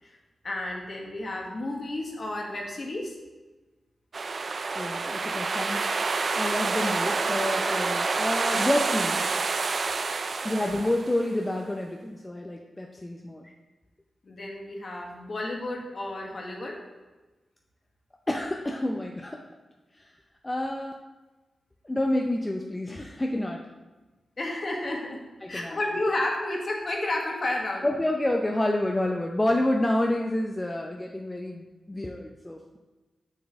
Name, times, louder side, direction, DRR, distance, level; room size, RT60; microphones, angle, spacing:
voice 1, 0.4-3.2 10.4-10.7 14.2-16.8 24.4-25.2 25.5-27.9, left 1 dB, 50° left, 0 dB, 1.4 m, -31 dB
sound 1, 4.1-11.4, right 4 dB, 55° right, 0.4 m, -28 dB
voice 2, 4.7-5.8 6.3-9.3 10.4-13.5 18.3-19.4 20.0-20.1 20.4-20.9 21.8-23.7 25.4-25.8 27.8-32.8, left 1 dB, 20° left, 1 dB, 0.5 m, -28 dB
6.3 x 6.2 x 3.5 m, 1.2 s
cardioid pair, 75°, 0 cm